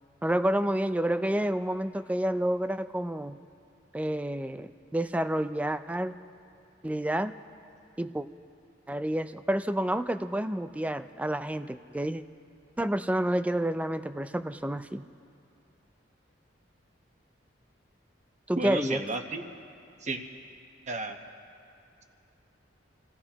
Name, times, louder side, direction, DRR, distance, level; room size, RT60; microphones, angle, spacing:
voice 1, 0.2-3.4 3.9-6.2 6.8-7.3 8.0-8.3 8.9-12.2 12.8-15.0 18.5-19.0, right 1 dB, 5° right, 11 dB, 0.3 m, -29 dB
voice 2, 18.6-19.4 20.0-20.2 20.9-21.2, right 2 dB, 35° right, 5 dB, 1.0 m, -32 dB
28.5 x 15.5 x 2.9 m, 2.8 s
head